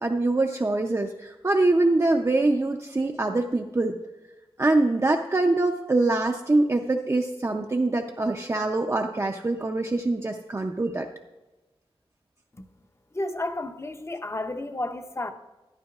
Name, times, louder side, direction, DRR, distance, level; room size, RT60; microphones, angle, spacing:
voice 1, 0.0-3.9 4.6-11.1, right 2 dB, 30° right, 2 dB, 0.5 m, -24 dB
voice 2, 13.1-15.3, left 2 dB, 25° left, 8 dB, 0.6 m, -32 dB
12.5 x 11.0 x 2.4 m, 1.1 s
wide cardioid pair, 85°, 10 cm